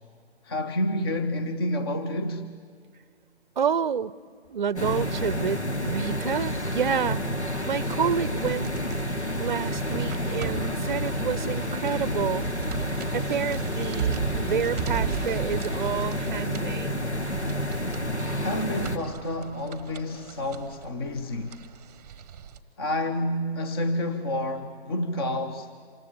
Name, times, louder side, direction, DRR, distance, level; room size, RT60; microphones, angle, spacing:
voice 1, 0.4-2.5 18.4-21.6 22.8-25.7, left 1 dB, 25° left, 0.8 m, -29 dB
voice 2, 3.6-4.1 4.5-7.3 7.7-8.7 9.4-12.5 13.1-17.0, right 7 dB, 45° right, 0.6 m, -29 dB
sound 1, 4.8-19.0, equal, 85° left, 2.1 m, -29 dB
sound 2, 8.5-22.6, right 8 dB, 15° right, 1.0 m, -38 dB
sound 3, 9.9-10.5, left 3 dB, 40° left, 5.9 m, -48 dB
27.0 x 25.0 x 8.6 m
figure-of-eight pair, 140°, 33 cm